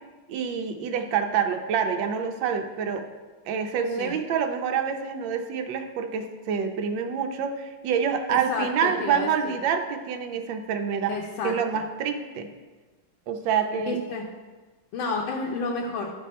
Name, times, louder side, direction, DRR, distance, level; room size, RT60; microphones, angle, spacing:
voice 1, 0.3-3.1 3.5-11.1 11.4-12.5 13.3-14.0, right 7 dB, 70° right, 5 dB, 1.4 m, -27 dB
voice 2, 8.3-9.6 11.1-11.5 13.9-14.3 14.9-16.1, left 3 dB, 70° left, -1 dB, 1.6 m, -30 dB
12.5 x 5.2 x 4.2 m, 1.3 s
omnidirectional pair, 2.3 m